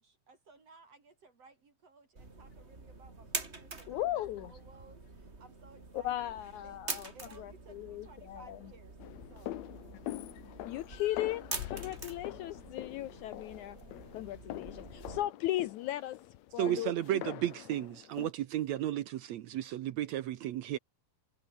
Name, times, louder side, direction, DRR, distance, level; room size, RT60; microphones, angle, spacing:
voice 1, 0.0-9.0 9.3-9.6, right 4 dB, 45° right, 4.6 m, -59 dB
sound 1, 2.1-15.2, right 3 dB, 20° right, 2.9 m, -45 dB
voice 2, 3.9-4.5 5.9-7.1 7.4-8.6 10.4-13.8 14.1-16.2 16.5-16.9, left 14 dB, 85° left, 1.7 m, -37 dB
sound 2, 9.0-18.3, left 14 dB, 70° left, 1.7 m, -45 dB
voice 3, 16.6-20.8, right 13 dB, 75° right, 1.6 m, -33 dB
omnidirectional pair, 4.3 m